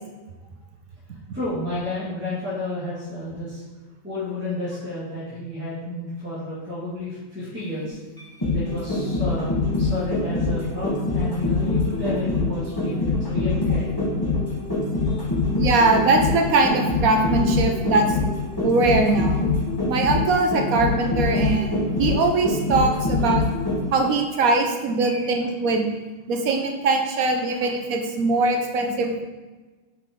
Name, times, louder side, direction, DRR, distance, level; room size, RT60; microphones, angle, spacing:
voice 1, 1.3-3.6 4.0-8.0 8.5-13.9 15.0-15.2 25.0-25.3, left 1 dB, 10° right, -11 dB, 1.9 m, -31 dB
sound 1, 8.2-24.0 24.4-24.5, left 3 dB, 15° left, 1.3 m, -24 dB
voice 2, 15.5-18.1 18.6-19.5 19.9-23.4 23.9-25.9 26.3-29.2, right 3 dB, 90° right, 3 dB, 1.3 m, -21 dB
6.1 x 5.5 x 3.7 m, 1.2 s
omnidirectional pair, 1.4 m